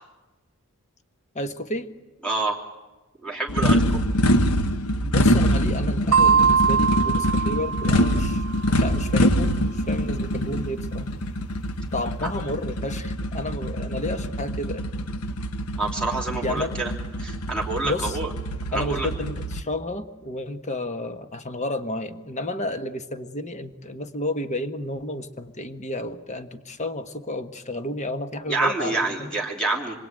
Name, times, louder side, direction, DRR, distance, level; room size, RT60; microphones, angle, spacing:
voice 1, 1.3-1.9 5.0-11.2 11.9-14.8 16.4-16.8 17.8-18.2 18.7-29.3, left 1 dB, 30° left, 9 dB, 1.4 m, -31 dB
voice 2, 2.2-2.6 3.2-4.0 15.8-16.9 17.2-18.3 18.7-19.1 28.5-30.0, right 3 dB, 5° left, -1 dB, 2.9 m, -27 dB
sound 1, 3.5-19.6, equal, 80° left, 1.2 m, -24 dB
sound 2, 6.1-8.6, right 6 dB, 75° right, 0.9 m, -21 dB
25.5 x 23.0 x 9.1 m, 1.1 s
head